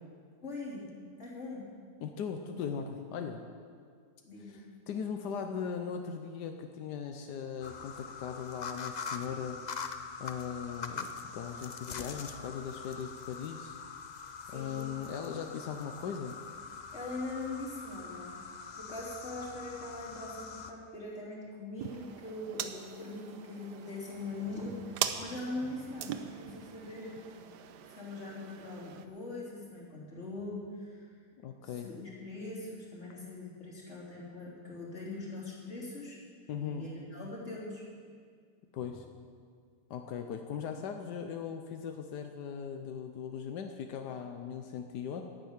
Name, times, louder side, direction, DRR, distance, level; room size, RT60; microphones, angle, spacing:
voice 1, 0.4-0.9 1.2-1.7 4.2-4.6 14.5-14.8 16.9-18.4 18.7-27.2 27.9-31.1 31.6-36.2 36.6-37.8, left 2 dB, 45° left, -5 dB, 3.6 m, -42 dB
voice 2, 2.0-3.4 4.5-9.6 10.2-13.8 14.5-16.4 31.4-31.9 36.5-36.9 38.7-39.0 39.9-45.2, left 7 dB, 90° left, 5 dB, 1.4 m, -39 dB
sound 1, 7.6-20.7, left 5 dB, 70° left, 0.4 m, -43 dB
sound 2, 21.8-29.1, right 9 dB, 90° right, 1.3 m, -41 dB
12.0 x 10.5 x 8.1 m, 2.1 s
omnidirectional pair, 1.7 m